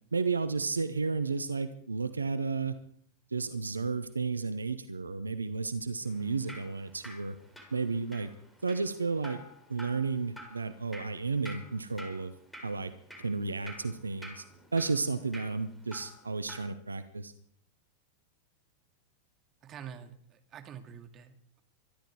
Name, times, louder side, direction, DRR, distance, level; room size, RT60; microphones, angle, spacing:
voice 1, 0.1-2.7 3.3-7.3 7.7-8.3 8.6-9.4 9.7-12.3 12.6-12.9 13.2-14.4 14.7-17.3, right 4 dB, 80° right, 12 dB, 0.9 m, -32 dB
Drip, 6.1-16.7, equal, 5° left, 4.4 m, -50 dB
voice 2, 19.6-21.6, right 8 dB, 30° right, 6 dB, 2.2 m, -47 dB
24.0 x 11.5 x 4.8 m, 0.66 s
figure-of-eight pair, 90°, 0 cm